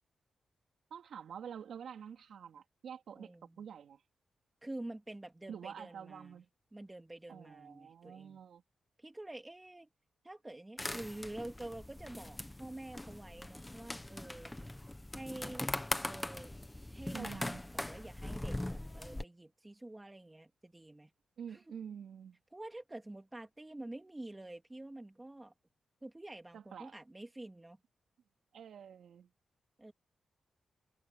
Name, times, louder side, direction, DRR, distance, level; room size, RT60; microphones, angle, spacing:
voice 1, 0.9-4.0 5.5-6.5 7.3-8.6 17.1-17.6 21.4-22.4 26.5-27.0 28.5-29.3, right 8 dB, 80° right, 3.7 m, -48 dB
voice 2, 3.1-3.6 4.6-6.4 6.7-8.4 9.0-9.9 10.2-14.6 15.1-15.7 16.0-16.5 16.9-21.1 21.5-21.7 22.5-25.5 26.0-27.8 29.8-29.9, right 1 dB, 15° right, 2.9 m, -48 dB
sound 1, 10.8-19.2, left 1 dB, 10° left, 1.3 m, -41 dB
wide cardioid pair, 130°, 0 cm